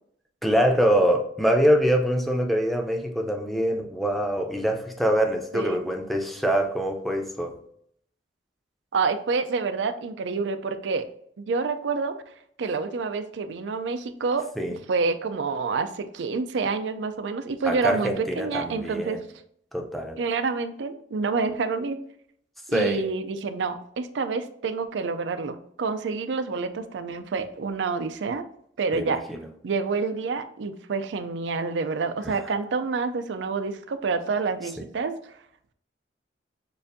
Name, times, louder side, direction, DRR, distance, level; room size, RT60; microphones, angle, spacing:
voice 1, 0.4-7.6 14.6-14.8 17.6-19.2 19.7-20.2 22.7-23.1 28.9-29.5 32.2-32.4 34.8-34.9, equal, ahead, 2 dB, 0.6 m, -24 dB
voice 2, 8.9-11.0 11.4-12.1 12.6-14.5 14.9-19.2 20.2-22.0 22.7-28.4 28.8-29.2 29.6-35.1, right 4 dB, 85° right, 10 dB, 0.4 m, -28 dB
6.6 x 2.5 x 2.6 m, 0.67 s
head